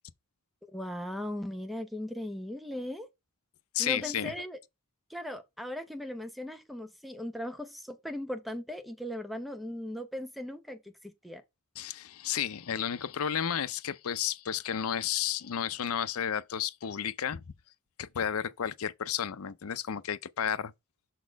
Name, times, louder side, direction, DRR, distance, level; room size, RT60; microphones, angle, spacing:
voice 1, 0.7-3.1 3.8-4.6 5.1-11.4, left 1 dB, ahead, 0.8 m, -38 dB
voice 2, 3.7-4.3 11.8-17.5 18.0-20.7, left 9 dB, 75° left, 0.5 m, -32 dB
6.3 x 4.1 x 4.6 m
head